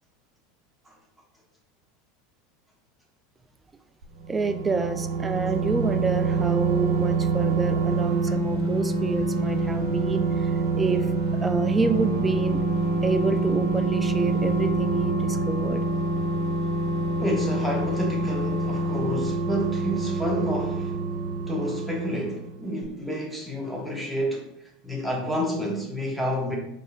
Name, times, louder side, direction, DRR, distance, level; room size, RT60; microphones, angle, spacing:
sound 1, 4.0-22.5 22.8-22.9, right 3 dB, 65° right, 0.9 m, -26 dB
voice 1, 4.3-11.1 11.4-12.6 13.0-15.8, right 4 dB, 15° right, 0.3 m, -28 dB
voice 2, 17.2-21.0 21.5-24.5 24.8-26.6, equal, ahead, 1.0 m, -29 dB
4.2 x 3.3 x 2.4 m
figure-of-eight pair, 80°, 0 cm